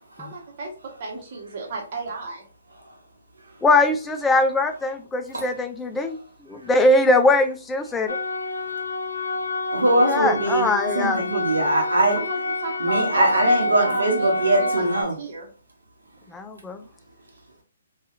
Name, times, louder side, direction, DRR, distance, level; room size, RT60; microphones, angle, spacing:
voice 1, 0.2-0.7 1.0-2.4 12.1-14.8 15.2-15.5, right 2 dB, 50° right, 1.0 m, -33 dB
voice 2, 3.6-6.2 6.5-8.2 10.0-11.4 16.3-16.8, left 2 dB, 10° left, 0.3 m, -21 dB
sound 1, 8.1-15.0, left 2 dB, 85° left, 0.4 m, -28 dB
voice 3, 9.7-10.7 10.9-12.2 12.8-15.1, right 1 dB, 85° right, 0.9 m, -21 dB
2.7 x 2.4 x 2.4 m
hypercardioid pair, 135°, 0 cm